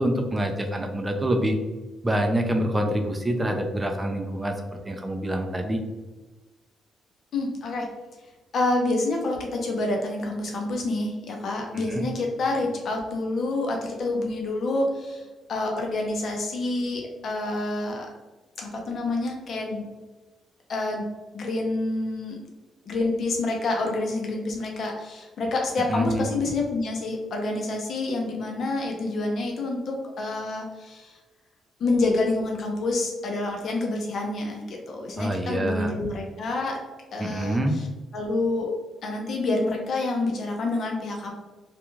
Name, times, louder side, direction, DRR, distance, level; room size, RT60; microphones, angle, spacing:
voice 1, 0.0-1.6 2.0-4.6 4.9-5.8 11.7-12.1 25.9-26.2 35.2-35.9 37.2-37.8, right 1 dB, 15° right, 4 dB, 0.4 m, -26 dB
voice 2, 7.3-7.9 8.5-18.1 18.6-19.9 20.7-21.1 21.3-22.4 22.9-31.1 31.8-36.8 37.1-37.9 38.1-38.7 39.0-41.3, left 2 dB, 60° left, 1 dB, 0.6 m, -28 dB
2.4 x 2.3 x 3.0 m, 1.2 s
cardioid pair, 90°, 0 cm